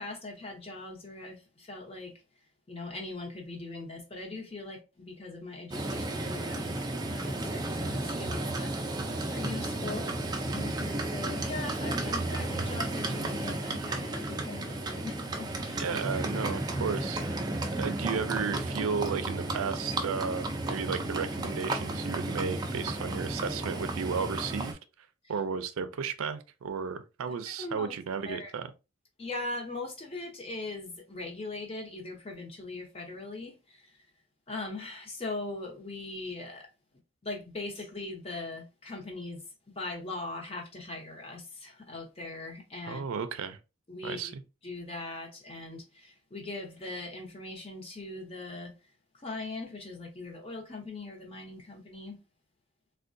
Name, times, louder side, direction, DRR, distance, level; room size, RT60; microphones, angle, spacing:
voice 1, 0.0-2.1 2.7-6.8 7.1-15.8 25.2-25.3 27.5-27.9 28.3-28.5 29.2-34.0 34.5-36.7 37.2-39.4 39.7-43.0 43.9-44.3 44.6-48.7 49.1-52.2, left 2 dB, 30° left, 0.7 m, -40 dB
Livestock farm animals working animals, 5.7-24.7, right 2 dB, 20° right, 0.3 m, -33 dB
voice 2, 15.8-17.2 17.8-24.8 25.3-28.7 42.9-43.6 44.0-44.4, right 6 dB, 90° right, 0.4 m, -34 dB
3.5 x 2.2 x 2.5 m
head